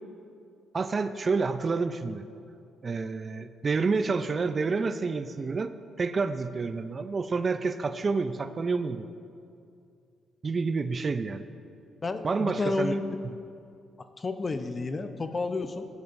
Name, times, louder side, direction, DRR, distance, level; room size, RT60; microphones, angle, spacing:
voice 1, 0.7-2.2 2.8-5.7 6.0-9.1 10.4-11.4 12.2-13.0, right 4 dB, 35° right, 10 dB, 0.4 m, -28 dB
voice 2, 12.0-13.0 14.2-15.9, left 3 dB, 30° left, 8 dB, 0.7 m, -30 dB
17.0 x 9.5 x 2.6 m, 2.4 s
cardioid pair, 90°, 0 cm